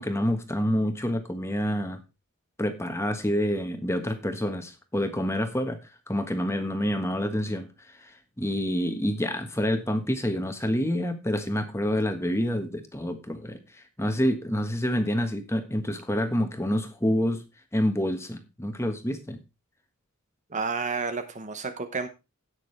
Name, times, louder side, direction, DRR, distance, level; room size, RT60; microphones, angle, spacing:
voice 1, 0.0-2.0 2.6-5.8 6.1-17.4 17.7-19.4, equal, 10° left, 7 dB, 1.3 m, -28 dB
voice 2, 20.5-22.1, right 4 dB, 35° right, 9 dB, 1.0 m, -30 dB
17.0 x 6.4 x 3.3 m, 0.27 s
head